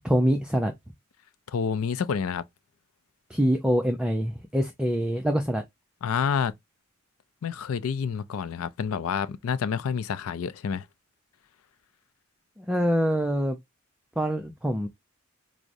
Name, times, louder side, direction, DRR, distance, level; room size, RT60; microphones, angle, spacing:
voice 1, 0.0-0.7 3.3-5.6 12.7-13.6 14.2-14.9, equal, 5° right, 0.4 m, -24 dB
voice 2, 1.5-2.4 6.0-6.5 7.4-10.8, left 6 dB, 85° left, 0.4 m, -28 dB
4.7 x 2.0 x 2.5 m
head